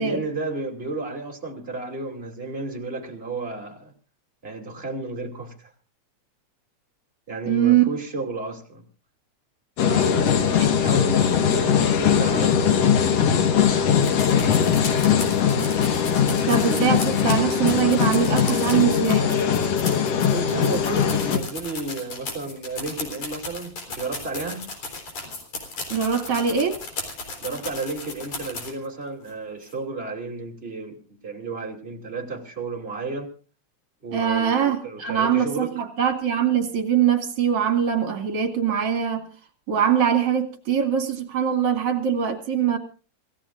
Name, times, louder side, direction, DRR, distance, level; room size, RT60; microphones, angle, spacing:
voice 1, 0.0-3.9 4.4-5.7 7.3-8.8 9.8-14.2 15.4-15.7 16.4-17.2 20.2-24.7 27.4-33.3 34.0-34.6 34.8-35.7, right 3 dB, 20° right, 3.1 m, -32 dB
voice 2, 7.5-7.9 16.5-19.3 25.9-26.8 34.1-39.3 39.7-42.8, right 8 dB, 55° right, 3.3 m, -22 dB
sound 1, 9.8-21.4, left 8 dB, 60° left, 2.4 m, -20 dB
sound 2, 14.0-28.9 29.3-29.4 29.6-29.7, left 3 dB, 85° left, 5.5 m, -35 dB
26.5 x 16.5 x 2.5 m
omnidirectional pair, 3.3 m